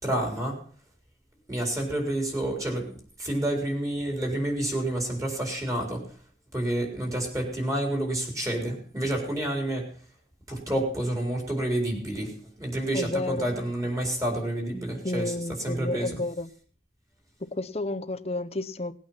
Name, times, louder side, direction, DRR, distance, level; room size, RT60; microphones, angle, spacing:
voice 1, 0.0-0.6 1.5-2.9 3.2-6.1 6.5-9.9 10.5-16.2, right 1 dB, 15° right, 2 dB, 4.2 m, -29 dB
voice 2, 12.9-13.5 15.0-16.5 17.4-18.9, left 2 dB, 35° left, 12 dB, 0.8 m, -31 dB
19.0 x 8.9 x 5.9 m, 0.44 s
head